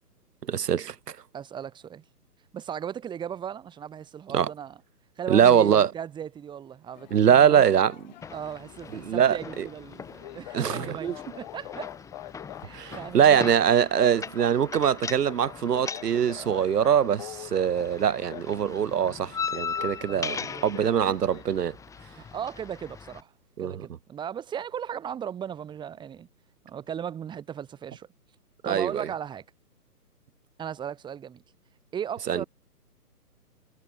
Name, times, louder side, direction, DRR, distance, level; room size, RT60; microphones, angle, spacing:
voice 1, 0.5-1.2 4.3-4.5 5.3-5.9 7.1-7.9 8.9-9.6 10.5-11.2 12.7-21.8 23.6-23.9 28.6-29.1 32.3-32.4, right 8 dB, 80° right, 0.7 m, -23 dB
voice 2, 1.3-2.0 2.5-4.8 5.2-7.6 8.3-11.9 12.6-13.5 16.4-16.7 18.5-18.7 20.1-20.9 22.1-23.3 23.6-26.3 26.6-28.1 28.6-29.4 30.6-31.4 31.9-32.5, right 8 dB, 10° right, 3.1 m, -37 dB
sound 1, 6.9-21.4, left 14 dB, 30° left, 1.6 m, -45 dB
sound 2, 8.2-23.2, left 6 dB, 5° left, 3.0 m, -39 dB
figure-of-eight pair, 135°, 47 cm